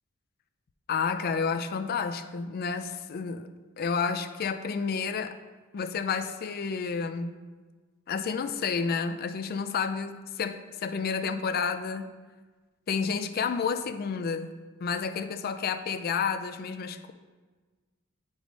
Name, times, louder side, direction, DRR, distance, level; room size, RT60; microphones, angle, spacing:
voice 1, 0.9-3.5 3.8-5.4 5.7-7.4 8.1-12.1 12.9-14.5 14.8-17.1, left 5 dB, 45° left, 10 dB, 0.4 m, -30 dB
8.1 x 3.1 x 5.1 m, 1.4 s
head